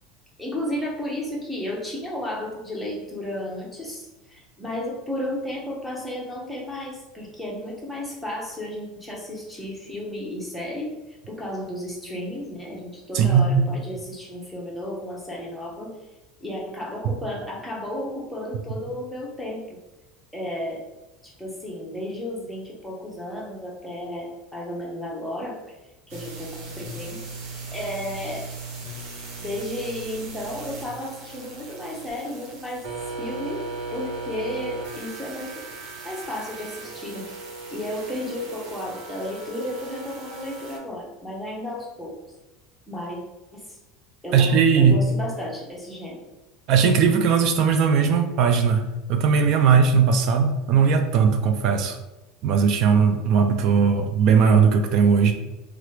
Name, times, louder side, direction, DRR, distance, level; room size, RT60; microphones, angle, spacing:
voice 1, 0.4-10.9 11.3-15.9 16.4-19.8 20.3-20.8 21.2-25.7 26.1-27.2 27.7-28.5 29.4-32.8 33.2-33.6 33.9-35.5 36.0-37.2 37.7-42.2 42.9-43.2 43.5-43.8 44.2-46.2, left 1 dB, ahead, -3 dB, 0.7 m, -33 dB
voice 2, 13.1-13.7 17.0-17.1 44.3-45.0 46.7-48.8 49.1-52.0 52.4-55.3, right 6 dB, 45° right, 7 dB, 0.3 m, -18 dB
sound 1, 26.1-40.8, right 3 dB, 70° right, 0.8 m, -37 dB
2.9 x 2.4 x 3.1 m, 1.0 s
cardioid pair, 160°, 0 cm